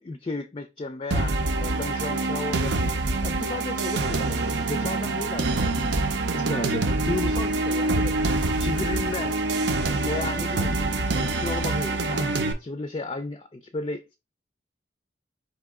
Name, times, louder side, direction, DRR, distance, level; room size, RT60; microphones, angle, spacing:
voice 1, 0.0-4.4 4.7-5.9 6.2-8.2 8.6-9.4 10.0-10.8 11.2-14.2, left 3 dB, 30° left, 0.4 m, -34 dB
sound 1, 1.1-12.5, right 2 dB, 80° right, 0.7 m, -25 dB
4.6 x 2.9 x 3.5 m
head